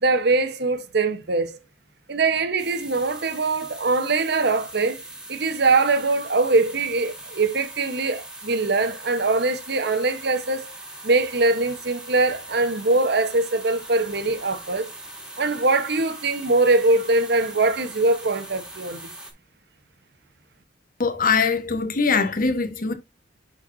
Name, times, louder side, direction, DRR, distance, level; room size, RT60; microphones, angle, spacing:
voice 1, 0.0-1.6 2.1-5.0 5.3-10.7 11.0-14.9 15.4-19.0, right 3 dB, 60° right, 1.1 m, -22 dB
sound 1, 2.6-19.3, right 1 dB, 5° right, 2.0 m, -41 dB
voice 2, 21.0-22.9, left 5 dB, 50° left, 1.2 m, -22 dB
10.5 x 4.6 x 2.6 m
head